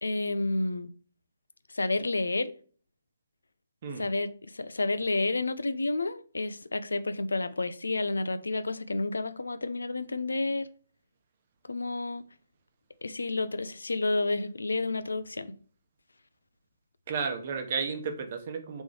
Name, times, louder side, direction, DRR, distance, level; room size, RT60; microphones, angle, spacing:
voice 1, 0.0-0.9 1.7-2.5 4.0-10.7 11.7-12.2 13.0-15.5, left 2 dB, 80° left, 0.4 m, -30 dB
voice 2, 17.1-18.8, right 5 dB, 45° right, 0.9 m, -33 dB
3.7 x 3.0 x 4.7 m
figure-of-eight pair, 140°, 0 cm